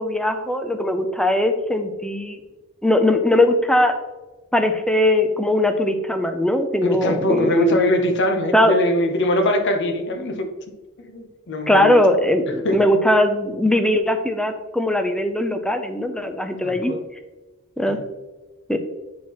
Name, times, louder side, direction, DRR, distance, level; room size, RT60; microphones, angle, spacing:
voice 1, 0.0-2.4 2.8-3.9 4.5-7.8 8.5-8.8 11.7-16.9 17.8-18.0 18.7-18.8, left 1 dB, 5° left, 6 dB, 0.4 m, -20 dB
voice 2, 6.8-10.5 11.0-11.9 12.6-12.9 16.6-17.0 17.9-18.0, left 1 dB, 55° left, 5 dB, 0.8 m, -22 dB
7.3 x 4.5 x 3.0 m, 1.2 s
head